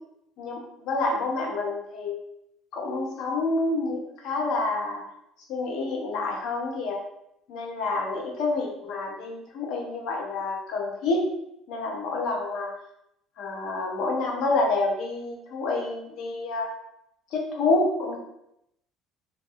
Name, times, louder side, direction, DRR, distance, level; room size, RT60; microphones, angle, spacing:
voice 1, 0.4-2.2 2.7-5.0 5.5-7.0 7.5-11.2 11.7-12.7 13.4-16.7 17.3-18.2, left 3 dB, 60° left, 0 dB, 0.5 m, -28 dB
2.1 x 2.1 x 2.7 m, 0.80 s
cardioid pair, 150°, 0 cm